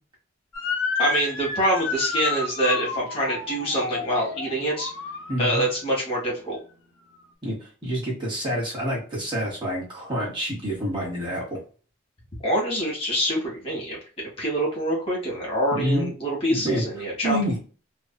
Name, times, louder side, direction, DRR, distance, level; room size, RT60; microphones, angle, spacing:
Motor vehicle (road) / Siren, 0.5-5.8, left 3 dB, 90° left, 0.6 m, -30 dB
voice 1, 1.0-4.9 5.4-6.6 12.4-14.0 14.4-17.4, equal, 30° left, -4 dB, 1.1 m, -25 dB
voice 2, 5.3-5.6 7.4-11.6 15.7-16.1 16.5-16.8 17.2-17.6, equal, 25° right, -5 dB, 1.2 m, -27 dB
2.7 x 2.4 x 2.2 m, 0.38 s
head